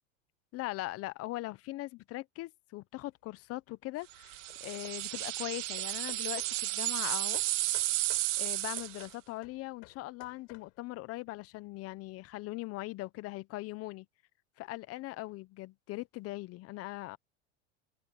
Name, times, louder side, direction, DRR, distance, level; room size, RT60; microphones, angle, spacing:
voice 1, 0.5-7.4 8.4-14.1 14.6-17.2, left 19 dB, 40° left, 0.9 m, -40 dB
Hammer / Wood, 3.1-3.6 4.2-6.7 7.3-11.0, left 33 dB, 65° left, 6.2 m, -56 dB
sound 1, 4.3-9.1, right 17 dB, 80° right, 2.1 m, -33 dB
open air
supercardioid pair, 125°, 36 cm